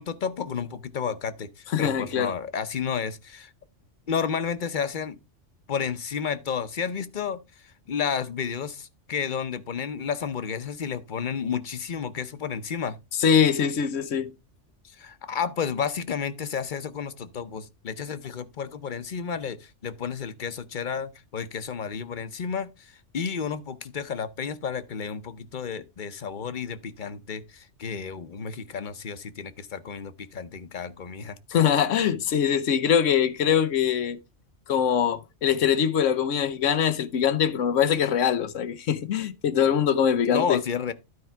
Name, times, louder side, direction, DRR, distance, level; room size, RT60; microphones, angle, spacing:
voice 1, 0.0-3.5 4.1-5.2 5.7-13.0 14.8-31.4 40.2-40.9, left 6 dB, 45° left, 0.9 m, -31 dB
voice 2, 1.7-2.3 13.2-14.3 31.5-34.2 34.7-40.6, left 8 dB, 85° left, 1.2 m, -23 dB
12.5 x 4.7 x 4.5 m
omnidirectional pair, 1.2 m